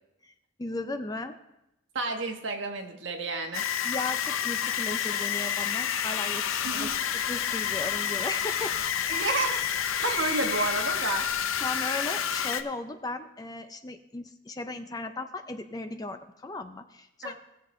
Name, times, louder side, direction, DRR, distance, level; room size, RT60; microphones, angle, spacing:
voice 1, 0.6-1.4 3.8-6.9 7.1-8.8 11.6-17.3, left 2 dB, 20° left, 8 dB, 0.4 m, -36 dB
voice 2, 1.9-3.7 6.6-6.9 9.1-11.3 17.2-17.3, right 3 dB, 70° right, 3 dB, 1.3 m, -31 dB
sound 1, 3.5-12.6, left 9 dB, 85° left, 0.6 m, -29 dB
sound 2, 6.4-11.6, equal, ahead, 4.4 m, -54 dB
18.5 x 7.3 x 3.1 m, 0.90 s
head